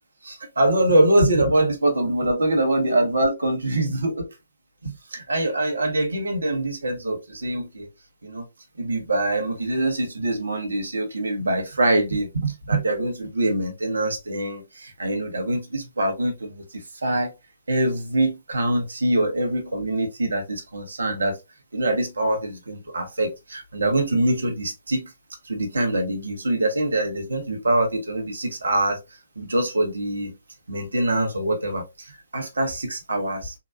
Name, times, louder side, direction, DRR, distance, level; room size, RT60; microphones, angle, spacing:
voice 1, 0.2-4.3 4.8-7.9 8.2-8.5 8.8-17.3 17.7-21.4 21.7-25.1 25.4-29.0 29.4-30.3 30.7-33.5, right 1 dB, 70° right, 1.0 m, -24 dB
3.8 x 2.2 x 2.3 m
figure-of-eight pair, 125°, 0 cm